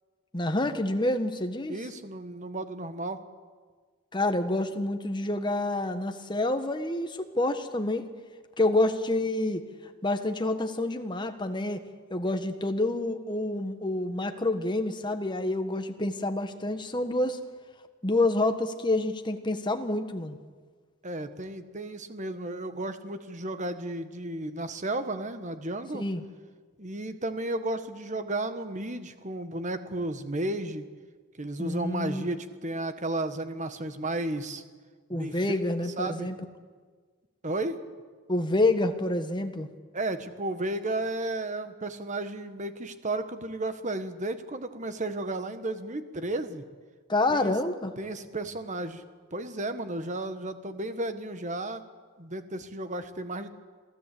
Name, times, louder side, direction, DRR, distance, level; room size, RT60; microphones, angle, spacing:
voice 1, 0.3-1.8 4.1-8.1 8.6-9.6 10.0-11.8 12.1-17.4 18.0-20.4 25.9-26.2 31.6-32.3 35.1-36.4 38.3-39.7 47.1-47.9, left 2 dB, 20° left, 7 dB, 1.4 m, -28 dB
voice 2, 1.7-3.2 21.0-26.0 26.8-30.9 31.4-34.6 35.1-35.6 36.0-36.3 37.4-37.8 39.9-46.6 47.3-47.5 48.0-49.0 49.3-51.9 52.2-53.5, right 2 dB, 35° right, 10 dB, 1.4 m, -33 dB
27.0 x 16.0 x 8.5 m, 1.5 s
head